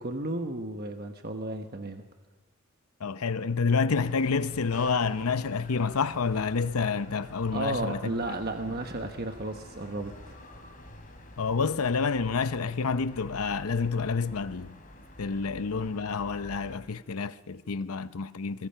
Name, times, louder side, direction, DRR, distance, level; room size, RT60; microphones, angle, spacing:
voice 1, 0.0-2.0 7.5-10.4, right 2 dB, 45° right, 1.2 m, -33 dB
voice 2, 3.0-8.0 11.4-14.8 15.2-18.7, left 5 dB, 85° left, 0.7 m, -28 dB
sound 1, 3.9-16.8, left 1 dB, 40° left, 3.6 m, -48 dB
23.5 x 21.5 x 5.8 m
head